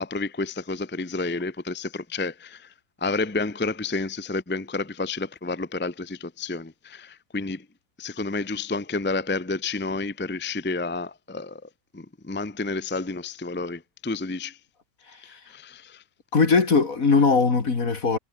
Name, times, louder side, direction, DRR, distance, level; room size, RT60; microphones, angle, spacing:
voice 1, 0.0-7.7 8.0-14.6 15.2-16.0, left 3 dB, 10° left, 0.7 m, -30 dB
voice 2, 16.3-18.2, left 4 dB, 65° left, 2.9 m, -20 dB
omnidirectional pair, 1.6 m